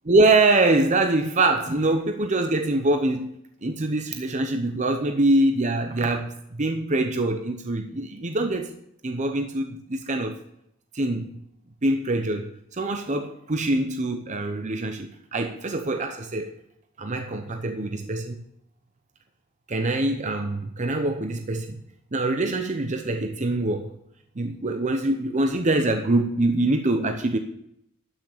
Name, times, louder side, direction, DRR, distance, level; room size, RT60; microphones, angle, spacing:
voice 1, 0.1-8.7 9.0-10.4 10.9-11.4 11.8-16.5 17.0-18.4 19.7-21.8 22.1-23.9 24.4-27.4, right 2 dB, 35° right, 6 dB, 0.8 m, -24 dB
12.0 x 6.1 x 6.7 m, 0.75 s
head